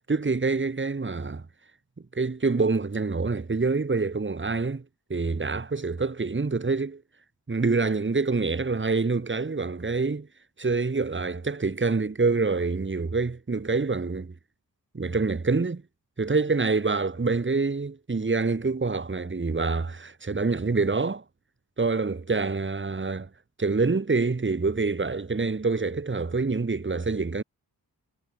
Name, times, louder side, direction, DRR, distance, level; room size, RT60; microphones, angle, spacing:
voice 1, 0.1-1.5 2.1-4.8 5.1-7.0 7.5-10.3 10.6-14.3 14.9-15.8 16.2-21.2 21.8-23.3 23.6-27.4, right 4 dB, 30° right, 2.1 m, -26 dB
cardioid pair, 60°, 38 cm